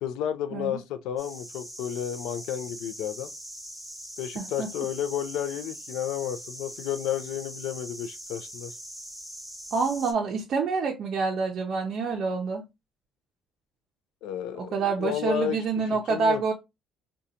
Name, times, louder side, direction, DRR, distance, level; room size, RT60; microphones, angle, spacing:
voice 1, 0.0-3.3 4.2-8.7 14.2-15.6 16.1-16.4, left 10 dB, 90° left, 0.4 m, -32 dB
sound 1, 1.2-10.1, right 1 dB, ahead, 0.9 m, -42 dB
voice 2, 4.4-4.7 9.7-12.6 14.6-16.5, right 4 dB, 50° right, 0.5 m, -27 dB
3.7 x 2.2 x 2.8 m
cardioid pair, 135°, 0 cm